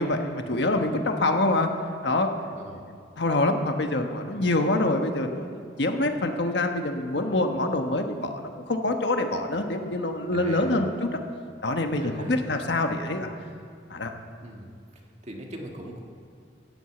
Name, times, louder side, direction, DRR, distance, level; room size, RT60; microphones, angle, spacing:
voice 1, 0.0-1.7 2.0-2.3 3.2-11.1 11.6-13.3 13.9-14.1, left 2 dB, 65° left, 5 dB, 1.2 m, -25 dB
voice 2, 2.5-2.9 10.3-10.8 12.0-12.7 14.4-14.7 15.2-16.0, right 1 dB, 35° right, 1 dB, 1.7 m, -40 dB
15.5 x 8.2 x 8.3 m, 2.3 s
head